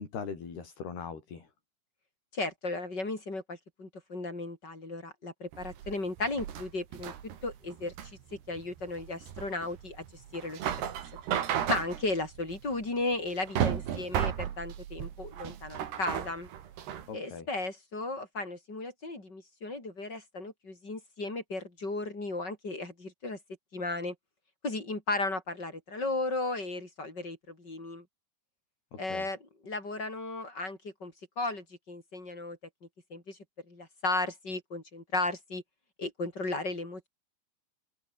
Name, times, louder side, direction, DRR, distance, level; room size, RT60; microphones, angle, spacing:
voice 1, 0.0-1.5 17.1-17.5 28.9-29.3, left 6 dB, 75° left, 7.3 m, -40 dB
voice 2, 2.3-7.1 7.4-8.2 8.5-10.0 10.3-11.2 11.7-16.5 17.1-23.4 23.7-24.1 24.6-28.1 29.0-32.6 33.1-33.4 33.7-35.6 36.0-37.1, left 2 dB, 25° left, 5.9 m, -35 dB
sound 1, 5.5-17.1, right 10 dB, 85° right, 4.5 m, -35 dB
omnidirectional pair, 4.6 m